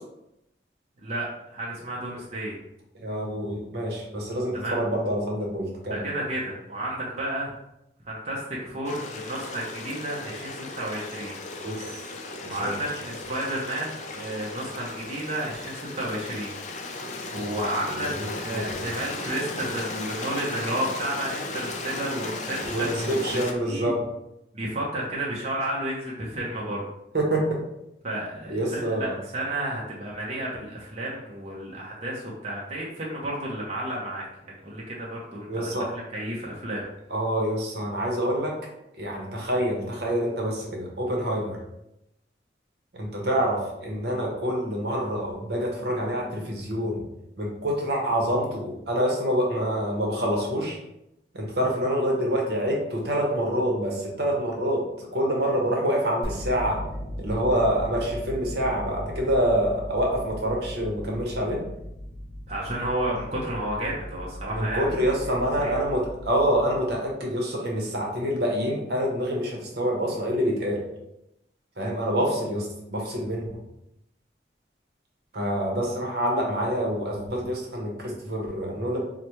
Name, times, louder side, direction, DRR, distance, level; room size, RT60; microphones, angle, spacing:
voice 1, 1.0-2.6 4.5-4.8 5.9-7.5 8.1-11.3 12.5-16.5 17.3-23.4 23.7-24.0 24.5-26.8 28.0-34.2 34.6-36.9 62.5-64.9 65.6-65.8, right 1 dB, 40° right, -5 dB, 0.6 m, -32 dB
voice 2, 2.9-6.0 11.6-12.0 12.4-12.7 17.9-18.7 22.6-24.0 27.1-27.4 28.5-29.2 35.5-35.9 37.1-38.5 39.0-41.6 42.9-47.0 47.4-50.8 51.3-56.8 57.2-61.6 64.5-70.8 71.8-73.5 75.3-79.0, equal, 65° right, -1 dB, 0.9 m, -26 dB
Stream, 8.8-23.5, left 3 dB, 40° left, 0.4 m, -36 dB
sound 1, 56.2-67.2, equal, ahead, 1.4 m, -38 dB
4.8 x 2.1 x 2.9 m, 0.85 s
head